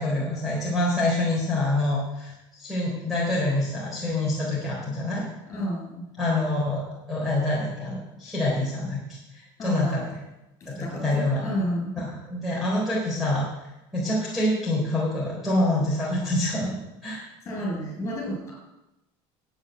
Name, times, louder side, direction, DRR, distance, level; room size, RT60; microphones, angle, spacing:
voice 1, 0.0-5.2 6.2-10.0 10.7-11.4 12.0-13.5 13.9-16.8 17.0-17.2, left 1 dB, ahead, -7 dB, 3.8 m, -26 dB
voice 2, 5.5-6.1 9.6-10.1 10.6-11.9 17.4-18.5, equal, 25° left, 0 dB, 6.7 m, -31 dB
10.5 x 9.0 x 9.1 m, 0.94 s
cardioid pair, 175°, 11 cm